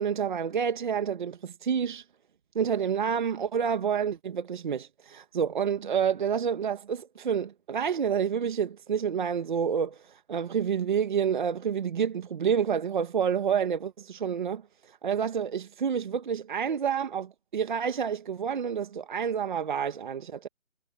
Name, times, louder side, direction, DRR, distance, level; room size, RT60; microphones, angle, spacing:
voice 1, 0.0-2.0 2.5-14.6 15.0-20.5, right 7 dB, 40° right, 1.6 m, -28 dB
hypercardioid pair, 165°, 36 cm